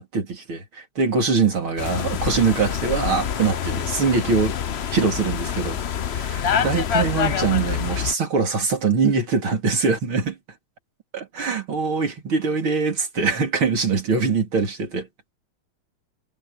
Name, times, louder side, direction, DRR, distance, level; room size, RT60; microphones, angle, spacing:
voice 1, 0.0-4.6 4.9-5.8 6.3-10.4 11.1-15.1, right 4 dB, 80° right, 4.4 m, -23 dB
sound 1, 1.8-8.1, left 8 dB, 70° left, 0.6 m, -26 dB
omnidirectional pair, 2.3 m